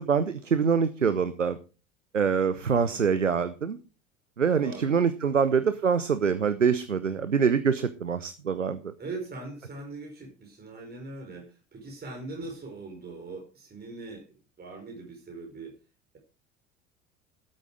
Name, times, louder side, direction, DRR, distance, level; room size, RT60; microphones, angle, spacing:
voice 1, 0.0-1.6 2.1-3.8 4.4-8.9, right 6 dB, 90° right, 13 dB, 0.8 m, -25 dB
voice 2, 9.0-14.2 14.6-15.7, right 3 dB, 25° right, 2 dB, 5.0 m, -41 dB
13.0 x 8.8 x 4.9 m, 0.34 s
figure-of-eight pair, 70°, 36 cm